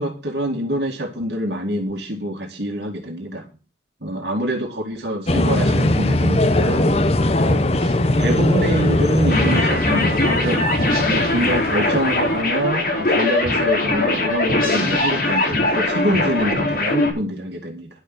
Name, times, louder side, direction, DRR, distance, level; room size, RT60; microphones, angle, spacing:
voice 1, 0.0-3.5 4.0-6.9 7.4-10.7 11.1-17.9, equal, 75° right, 1 dB, 2.1 m, -25 dB
sound 1, 5.3-12.4, left 1 dB, 35° left, 0.8 m, -20 dB
sound 2, 9.3-17.1, left 2 dB, 50° left, 5.2 m, -21 dB
11.0 x 6.6 x 8.0 m, 0.35 s
head